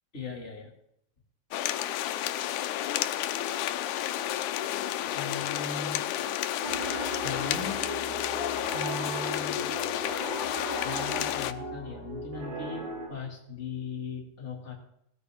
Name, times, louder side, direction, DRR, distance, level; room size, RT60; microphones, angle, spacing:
voice 1, 0.1-0.7 5.0-6.0 7.2-7.9 8.7-9.7 10.8-12.8 13.1-14.7, left 4 dB, 25° left, -1 dB, 2.4 m, -38 dB
sound 1, 1.5-11.5, left 12 dB, 90° left, 2.1 m, -31 dB
Piano, 6.6-13.1, right 2 dB, 70° right, 4.6 m, -38 dB
17.0 x 13.0 x 3.6 m, 0.76 s
omnidirectional pair, 3.4 m